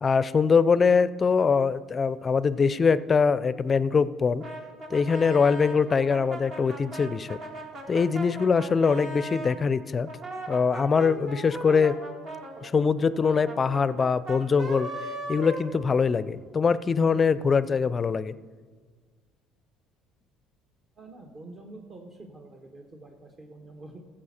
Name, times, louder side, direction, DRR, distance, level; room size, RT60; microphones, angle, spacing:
voice 1, 0.0-4.4 4.9-7.4 7.9-10.1 10.5-12.0 12.6-14.9 15.3-18.3, left 5 dB, 35° left, 17 dB, 0.4 m, -23 dB
Brass instrument, 4.4-9.6 10.0-16.4, right 1 dB, 55° right, 1.8 m, -38 dB
voice 2, 20.9-24.0, right 2 dB, 40° right, 1 dB, 1.2 m, -46 dB
14.0 x 7.5 x 4.3 m, 1.5 s
supercardioid pair, 80°, 0 cm